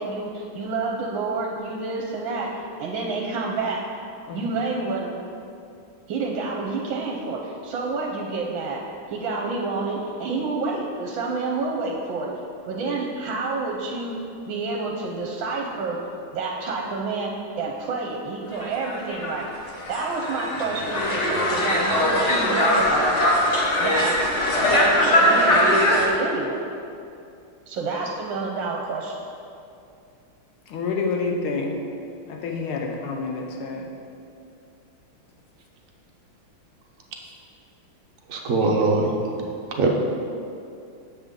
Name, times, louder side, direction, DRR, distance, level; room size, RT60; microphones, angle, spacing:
voice 1, 0.0-3.9 4.3-5.2 6.1-8.8 9.1-12.3 12.6-14.2 14.5-16.0 16.3-19.5 19.9-22.9 23.8-24.2 24.8-26.6 27.7-29.2, right 3 dB, 75° right, 0 dB, 1.4 m, -28 dB
sound 1, 18.6-26.1, left 1 dB, 45° left, 1.0 m, -21 dB
voice 2, 30.7-31.8 32.2-33.9, left 4 dB, 90° left, 1 dB, 1.7 m, -28 dB
voice 3, 38.3-39.4 39.8-39.9, right 3 dB, 55° right, 0 dB, 0.9 m, -22 dB
7.7 x 6.9 x 3.7 m, 2.5 s
omnidirectional pair, 2.2 m